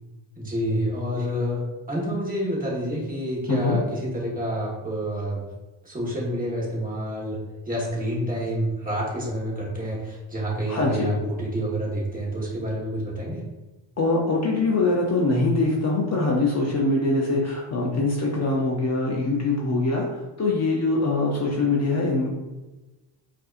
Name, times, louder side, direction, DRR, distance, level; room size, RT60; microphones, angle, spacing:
voice 1, 0.4-5.4 5.8-7.4 7.7-13.4, equal, 15° right, -5 dB, 1.3 m, -28 dB
voice 2, 3.5-3.8 10.7-11.2 14.0-22.3, left 2 dB, 35° left, -2 dB, 0.6 m, -23 dB
5.2 x 2.6 x 2.5 m, 1.1 s
cardioid pair, 120°, 47 cm